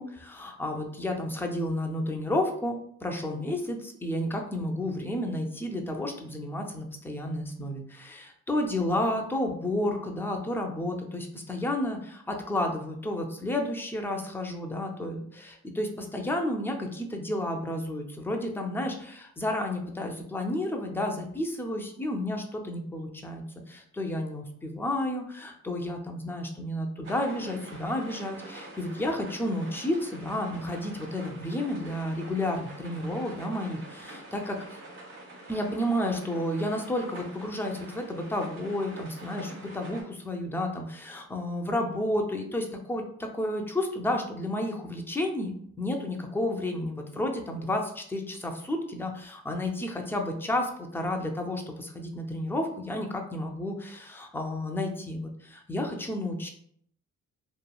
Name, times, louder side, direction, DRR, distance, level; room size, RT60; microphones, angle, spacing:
voice 1, 0.0-34.8 35.5-56.5, left 1 dB, 5° left, 2 dB, 0.4 m, -31 dB
sound 1, 27.0-40.0, right 2 dB, 55° right, 1.4 m, -46 dB
2.9 x 2.4 x 2.2 m, 0.66 s
cardioid pair, 90°, 30 cm